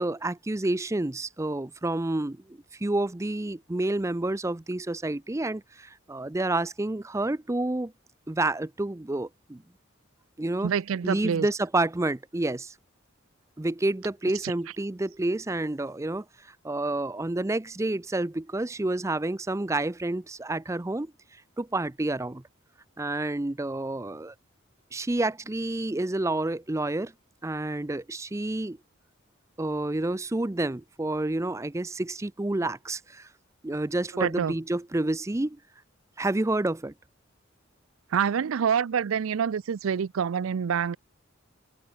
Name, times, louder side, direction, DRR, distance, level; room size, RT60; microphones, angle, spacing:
voice 1, 0.0-7.9 8.3-9.6 10.4-10.7 11.0-12.7 13.6-21.1 21.6-22.4 23.0-24.3 24.9-27.1 27.4-28.8 29.6-33.3 33.6-35.6 36.2-36.9, right 2 dB, 15° right, 0.5 m, -29 dB
voice 2, 10.6-11.5 14.4-14.5 34.2-34.6 38.1-41.0, right 7 dB, 85° right, 0.4 m, -26 dB
head